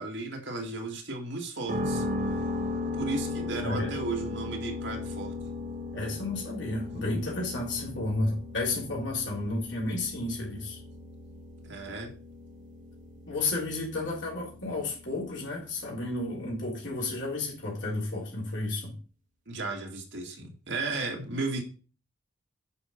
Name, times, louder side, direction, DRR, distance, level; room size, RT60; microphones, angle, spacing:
voice 1, 0.0-2.0 2.9-5.3 11.6-12.1 19.5-21.6, right 3 dB, 60° right, 1 dB, 2.3 m, -34 dB
sound 1, 1.7-17.5, left 2 dB, 40° right, 1.9 m, -37 dB
voice 2, 5.9-10.8 13.3-18.9, left 2 dB, 60° left, -3 dB, 4.0 m, -32 dB
9.9 x 5.7 x 5.2 m, 0.37 s
head